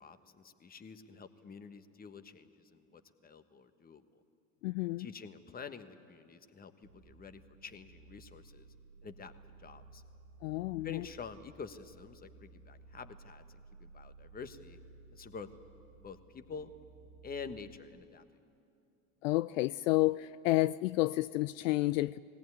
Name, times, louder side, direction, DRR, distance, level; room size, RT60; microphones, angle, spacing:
voice 1, 0.0-4.2 5.0-8.7 9.0-9.3 9.6-10.0 10.8-14.8 15.1-15.5 16.0-16.7 17.2-18.2, left 5 dB, 20° left, 1.3 m, -48 dB
voice 2, 4.6-5.1 10.4-11.0 19.2-22.2, left 18 dB, 70° left, 0.5 m, -30 dB
sound 1, 6.8-17.8, right 3 dB, 75° right, 1.8 m, -57 dB
20.0 x 17.5 x 9.6 m
hypercardioid pair, 80°, 40 cm